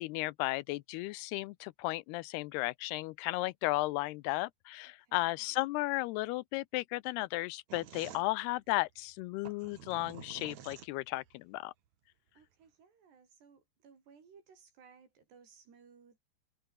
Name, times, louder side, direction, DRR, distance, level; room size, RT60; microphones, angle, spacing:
voice 1, 0.0-11.7, left 20 dB, 85° left, 2.6 m, -34 dB
voice 2, 5.0-5.6 12.4-16.2, right 6 dB, 85° right, 7.3 m, -60 dB
sound 1, 7.7-11.4, right 9 dB, 55° right, 2.7 m, -50 dB
omnidirectional pair, 4.7 m